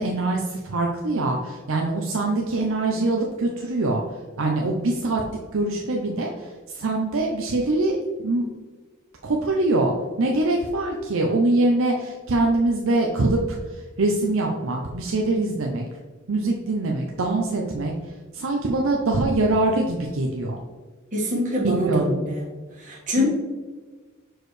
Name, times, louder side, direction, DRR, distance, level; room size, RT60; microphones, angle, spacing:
voice 1, 0.0-4.0 4.4-5.2 5.5-8.0 8.2-8.5 9.2-9.9 10.2-13.6 14.0-15.9 16.3-17.9 18.3-20.6 21.8-22.2 23.2-23.3, right 2 dB, 65° right, 0 dB, 0.6 m, -23 dB
voice 2, 21.1-22.5 22.8-23.3, left 1 dB, 40° right, -4 dB, 1.8 m, -24 dB
6.3 x 4.7 x 3.2 m, 1.4 s
head